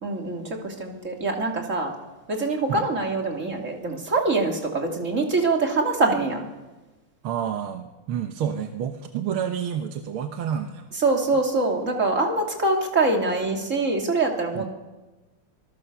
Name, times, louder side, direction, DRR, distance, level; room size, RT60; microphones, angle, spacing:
voice 1, 0.0-1.9 2.3-6.4 11.0-14.7, right 3 dB, 35° right, 2 dB, 3.1 m, -24 dB
voice 2, 7.2-10.9 14.5-14.7, right 8 dB, 75° right, 6 dB, 1.9 m, -29 dB
25.0 x 21.0 x 6.9 m, 1.2 s
omnidirectional pair, 2.4 m